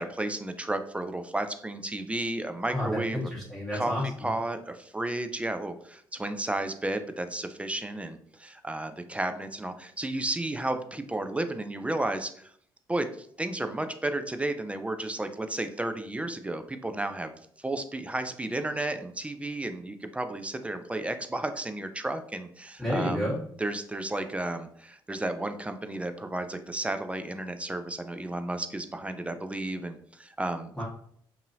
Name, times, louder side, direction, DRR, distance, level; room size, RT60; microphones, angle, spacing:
voice 1, 0.0-3.2 3.7-3.9 4.2-12.5 12.9-17.3 17.6-30.8, right 2 dB, 10° right, 8 dB, 0.3 m, -33 dB
voice 2, 2.7-4.3 22.8-23.4 30.8-30.9, left 1 dB, 5° left, -8 dB, 1.3 m, -30 dB
2.6 x 2.6 x 2.6 m, 0.64 s
hypercardioid pair, 50°, 11 cm